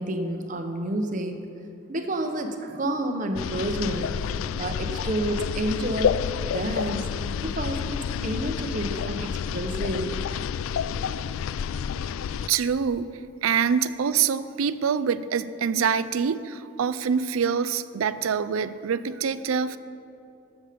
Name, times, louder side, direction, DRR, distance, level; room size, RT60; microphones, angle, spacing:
voice 1, 0.0-1.5 1.9-4.2 4.6-10.2, right 1 dB, 40° right, 5 dB, 0.8 m, -30 dB
sound 1, 3.4-12.5, left 7 dB, 80° left, 0.3 m, -29 dB
voice 2, 12.5-13.1 13.4-19.8, right 7 dB, 85° right, 14 dB, 0.4 m, -25 dB
13.0 x 7.2 x 5.1 m, 2.7 s
head